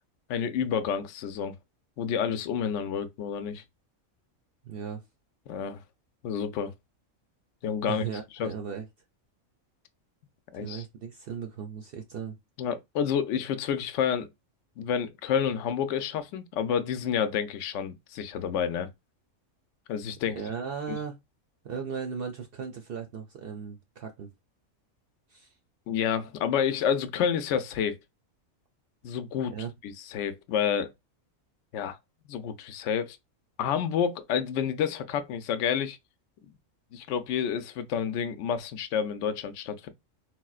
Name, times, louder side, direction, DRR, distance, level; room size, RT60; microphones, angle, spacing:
voice 1, 0.3-1.5 2.0-3.6 5.5-5.8 6.2-6.7 7.6-8.0 8.4-8.5 10.5-10.8 12.6-14.3 14.8-18.9 19.9-20.4 20.9-21.0 25.9-28.0 29.0-29.5 29.8-30.9 31.7-32.0 32.3-33.2 33.6-36.0 36.9-39.9, left 8 dB, 70° left, 0.8 m, -29 dB
voice 2, 4.6-5.0 7.8-8.9 10.6-12.4 20.2-21.2 21.6-24.3 25.3-25.5 29.5-29.7, right 6 dB, 60° right, 0.6 m, -37 dB
4.2 x 2.1 x 2.3 m
omnidirectional pair, 1.4 m